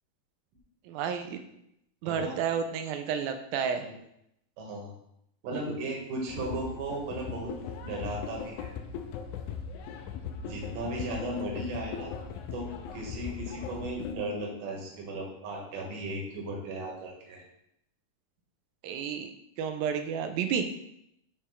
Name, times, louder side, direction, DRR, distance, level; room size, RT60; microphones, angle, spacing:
voice 1, 0.9-1.4 2.0-3.9 18.8-19.3 19.6-20.7, right 7 dB, 90° right, 6 dB, 2.4 m, -31 dB
voice 2, 2.0-2.4 3.7-3.9 4.6-4.9 5.4-7.5 7.8-8.7 10.4-12.1 12.5-17.4, right 1 dB, 70° right, -1 dB, 2.9 m, -36 dB
sound 1, 6.3-14.2, left 6 dB, 80° left, 1.7 m, -39 dB
6.5 x 4.5 x 5.7 m, 0.77 s
omnidirectional pair, 4.0 m